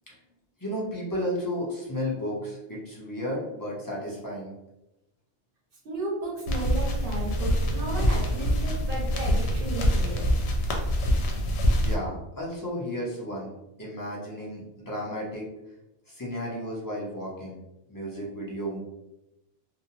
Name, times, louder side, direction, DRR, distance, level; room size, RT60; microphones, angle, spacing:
voice 1, 0.6-4.5 11.7-13.5 13.8-15.5 16.1-17.6 17.9-18.8, equal, 20° left, -5 dB, 0.7 m, -33 dB
voice 2, 5.8-10.2, right 2 dB, 60° right, -2 dB, 0.9 m, -34 dB
sound 1, 6.5-12.0, equal, 85° left, 0.9 m, -25 dB
2.6 x 2.1 x 2.8 m, 0.92 s
omnidirectional pair, 1.1 m